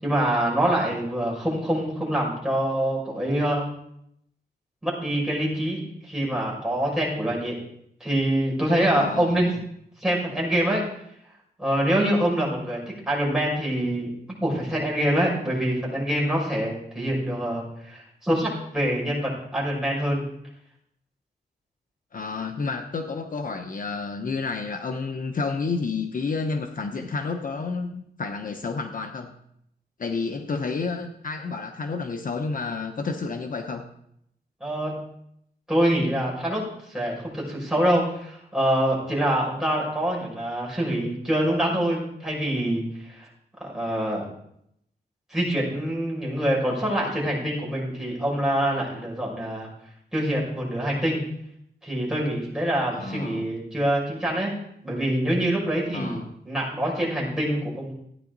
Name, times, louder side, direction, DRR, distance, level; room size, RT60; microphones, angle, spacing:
voice 1, 0.0-3.7 4.8-7.5 8.0-9.5 10.0-10.8 11.6-14.1 14.4-20.2 34.6-35.0 35.7-36.6 36.9-43.3 43.6-44.3 45.3-49.7 50.1-51.2 51.8-54.5 54.8-57.9, right 1 dB, 5° right, -5 dB, 6.1 m, -25 dB
voice 2, 8.9-9.6 22.1-29.3 30.0-33.8 52.9-53.5 55.9-56.3, left 4 dB, 55° left, 5 dB, 0.9 m, -30 dB
15.0 x 9.7 x 4.0 m, 0.75 s
wide cardioid pair, 100°, 17 cm